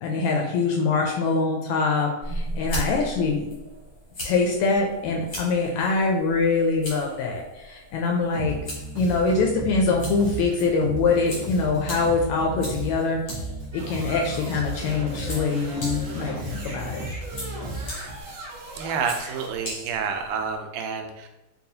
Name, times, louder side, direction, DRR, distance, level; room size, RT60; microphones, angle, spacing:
voice 1, 0.0-3.5 4.2-8.6 8.9-13.4 13.7-17.1, left 4 dB, 80° left, 1 dB, 1.6 m, -24 dB
sound 1, 2.2-20.6, equal, 60° left, 1.0 m, -39 dB
Bass guitar, 8.3-18.2, right 2 dB, 45° right, 1.1 m, -35 dB
sound 2, 13.7-19.5, right 1 dB, 65° right, 2.1 m, -39 dB
voice 2, 18.8-21.3, right 6 dB, 85° right, 4 dB, 2.0 m, -29 dB
5.4 x 2.3 x 2.7 m, 0.98 s
omnidirectional pair, 3.5 m